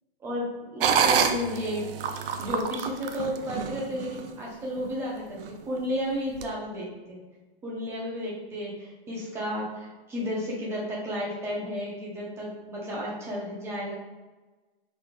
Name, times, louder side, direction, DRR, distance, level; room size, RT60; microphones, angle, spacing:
voice 1, 0.2-1.8 2.2-7.2 7.6-13.9, equal, 10° right, -5 dB, 0.8 m, -33 dB
sound 1, 0.8-4.3 4.8-4.9 5.4-5.8 6.4-6.5, right 7 dB, 65° right, 0.5 m, -27 dB
5.2 x 4.1 x 2.4 m, 1.2 s
supercardioid pair, 165°, 30 cm